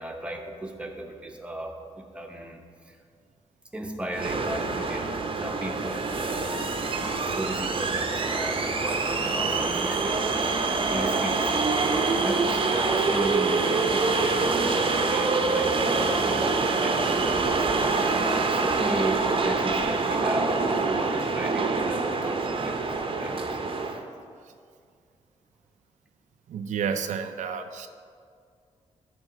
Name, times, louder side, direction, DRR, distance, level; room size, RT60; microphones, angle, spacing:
voice 1, 0.0-3.0 3.7-10.5 10.9-11.5 11.8-23.6 23.9-24.0, right 1 dB, 10° right, 2 dB, 0.9 m, -36 dB
sound 1, 4.1-24.0, right 3 dB, 45° right, 0.7 m, -25 dB
voice 2, 26.5-27.9, right 7 dB, 80° right, 7 dB, 0.4 m, -30 dB
10.5 x 3.6 x 4.9 m, 2.2 s
cardioid pair, 90°, 12 cm